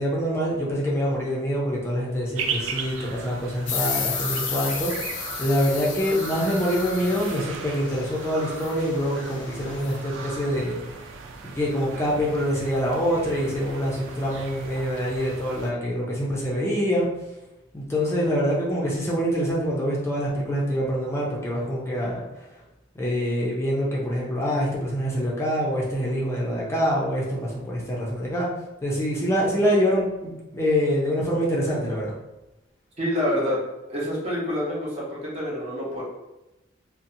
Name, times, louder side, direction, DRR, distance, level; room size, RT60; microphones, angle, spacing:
voice 1, 0.0-5.1 5.4-10.9 11.4-17.1 17.7-22.5 22.9-28.5 28.8-32.1, equal, 15° left, -5 dB, 0.5 m, -25 dB
sound 1, 2.4-15.7, right 5 dB, 90° right, 0.3 m, -37 dB
sound 2, 3.7-10.1, left 6 dB, 70° left, 0.4 m, -33 dB
voice 2, 33.0-33.6 33.9-36.0, equal, 35° right, -5 dB, 0.7 m, -27 dB
2.6 x 2.1 x 2.6 m, 0.98 s
head